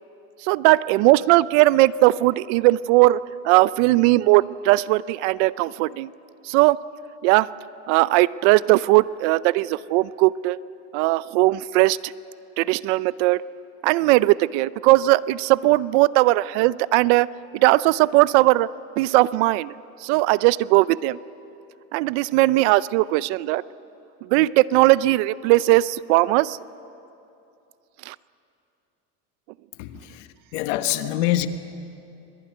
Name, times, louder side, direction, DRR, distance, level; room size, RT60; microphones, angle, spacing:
voice 1, 0.4-6.1 6.4-6.9 7.2-7.5 7.9-10.6 10.9-12.1 12.6-13.4 13.8-17.3 17.5-18.7 19.0-19.7 20.0-21.2 21.9-23.6 24.2-26.6 28.1-28.2, right 19 dB, 70° right, 19 dB, 0.7 m, -19 dB
voice 2, 29.8-31.5, left 14 dB, 80° left, 9 dB, 1.6 m, -25 dB
26.0 x 20.0 x 9.4 m, 2.7 s
cardioid pair, 145°, 36 cm